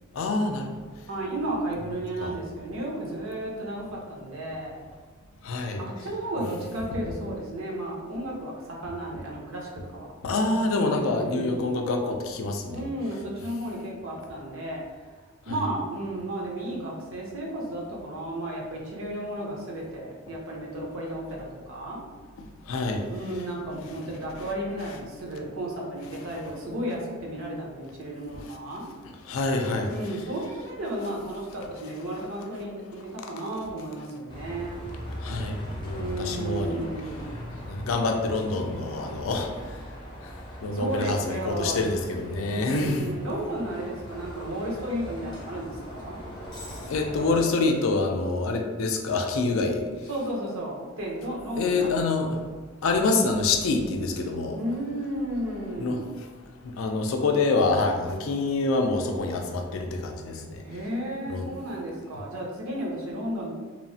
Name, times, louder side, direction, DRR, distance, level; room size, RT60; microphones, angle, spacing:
voice 1, 0.1-0.8 2.2-2.3 5.4-5.8 10.2-12.8 15.5-15.6 22.7-23.0 28.3-28.4 29.3-29.9 35.2-35.6 35.8-36.9 37.7-39.5 40.6-43.1 46.9-49.9 51.6-52.3 52.8-54.6 55.8-56.0 56.6-60.6 61.3-61.5, left 3 dB, 75° left, 3 dB, 0.4 m, -26 dB
voice 2, 1.1-4.8 5.8-10.1 10.9-11.7 12.7-14.8 15.5-22.0 23.1-28.9 29.9-34.8 36.0-37.3 40.7-41.8 42.5-46.2 50.1-52.4 54.6-56.1 60.6-63.5, right 1 dB, 70° right, -3 dB, 0.6 m, -33 dB
Bus, 34.3-47.4, equal, 20° left, 0.6 m, -40 dB
3.0 x 2.0 x 2.6 m, 1.4 s
head